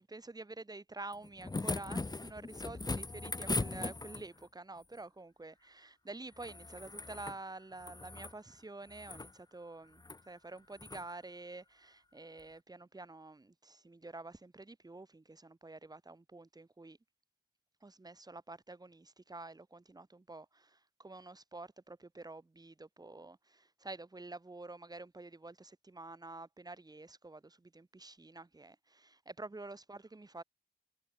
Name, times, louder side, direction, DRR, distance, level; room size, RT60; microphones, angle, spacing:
voice 1, 0.0-17.0 17.8-30.4, right 2 dB, 25° right, 2.3 m, -49 dB
sound 1, 1.1-4.4 6.4-7.4 7.7-8.4 8.9-9.3 10.0-10.2 10.8-11.0 12.4-12.5, left 3 dB, 25° left, 1.1 m, -39 dB
wide cardioid pair, 90°, 17 cm